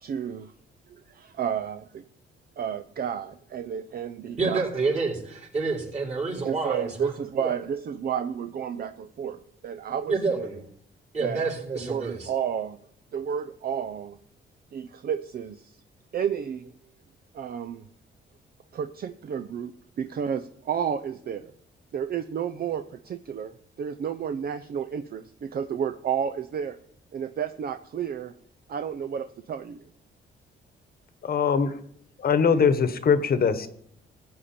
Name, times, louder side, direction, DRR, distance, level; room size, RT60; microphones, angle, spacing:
voice 1, 0.0-0.5 0.9-2.0 2.6-4.6 6.4-10.5 11.2-11.4 11.7-12.8 13.1-14.2 14.7-15.8 16.1-16.7 17.3-17.9 18.7-21.5 21.9-26.8 27.1-28.3 28.7-29.8, right 8 dB, 50° right, 10 dB, 0.6 m, -31 dB
voice 2, 4.4-7.1 7.4-7.5 10.1-10.6 11.1-12.3, right 4 dB, 35° right, -2 dB, 4.6 m, -28 dB
voice 3, 31.2-31.7 32.2-33.7, left 6 dB, 50° left, 11 dB, 1.1 m, -22 dB
15.5 x 8.6 x 4.3 m, 0.65 s
cardioid pair, 90°, 20 cm